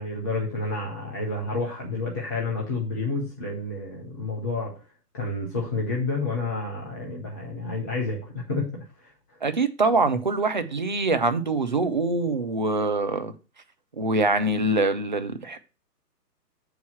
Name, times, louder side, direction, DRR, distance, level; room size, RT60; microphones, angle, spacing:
voice 1, 0.0-4.7 5.1-8.8, left 3 dB, 10° left, 0.6 m, -29 dB
voice 2, 9.4-13.3 14.0-15.6, right 2 dB, 30° right, 0.5 m, -24 dB
6.8 x 4.7 x 6.2 m
figure-of-eight pair, 135°, 49 cm